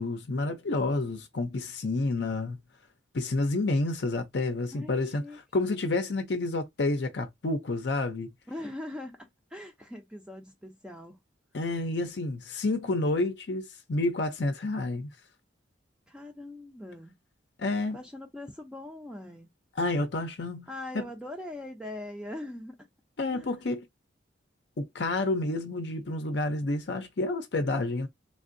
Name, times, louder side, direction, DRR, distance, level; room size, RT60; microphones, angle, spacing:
voice 1, 0.0-2.6 3.1-5.2 5.5-8.3 11.5-15.1 17.6-18.0 19.8-20.7 20.9-21.0 23.2-23.8 24.8-28.1, left 2 dB, 60° left, 0.6 m, -29 dB
voice 2, 4.7-5.4 8.5-11.2 16.1-17.2 17.9-19.5 20.7-22.9 23.3-23.6, left 1 dB, 5° right, 0.5 m, -41 dB
3.4 x 2.5 x 2.5 m
head